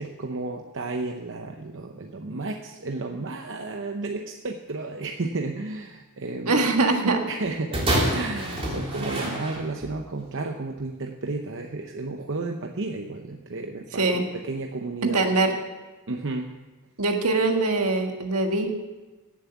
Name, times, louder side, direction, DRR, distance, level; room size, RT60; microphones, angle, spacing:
voice 1, 0.0-6.6 7.3-7.8 8.1-15.2 16.1-16.5, right 3 dB, 60° right, 3 dB, 0.8 m, -32 dB
voice 2, 6.5-7.2 14.0-14.2 15.0-15.5 17.0-18.7, right 3 dB, 75° right, 4 dB, 1.7 m, -22 dB
sound 1, 7.7-10.0 10.8-10.9, right 1 dB, 25° right, 3.3 m, -27 dB
16.5 x 7.4 x 7.0 m, 1.2 s
head